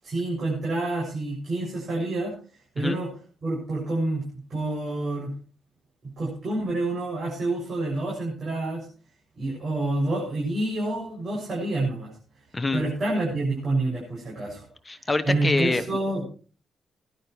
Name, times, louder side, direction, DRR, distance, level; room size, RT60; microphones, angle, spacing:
voice 1, 0.0-2.3 2.7-3.1 3.4-5.3 6.0-8.9 9.4-12.1 12.7-14.7 15.2-16.2, right 2 dB, 40° right, -4 dB, 7.4 m, -28 dB
voice 2, 12.5-12.8 14.9-15.8, left 3 dB, 20° left, 10 dB, 1.1 m, -25 dB
21.5 x 11.5 x 3.2 m, 0.38 s
cardioid pair, 130°, 0 cm